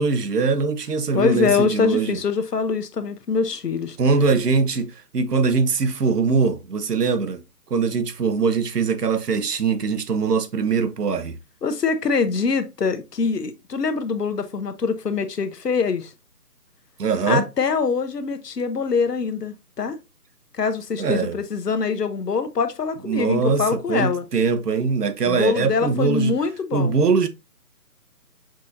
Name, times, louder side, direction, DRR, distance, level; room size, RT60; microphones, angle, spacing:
voice 1, 0.0-2.2 4.0-7.4 7.7-11.3 17.0-17.4 21.0-21.4 23.1-26.3 26.7-27.3, right 5 dB, 80° right, 0.9 m, -22 dB
voice 2, 1.1-4.0 11.6-16.1 17.3-20.0 20.5-24.2 25.2-27.0, left 5 dB, 85° left, 0.9 m, -24 dB
6.1 x 2.9 x 2.5 m
figure-of-eight pair, 160°, 47 cm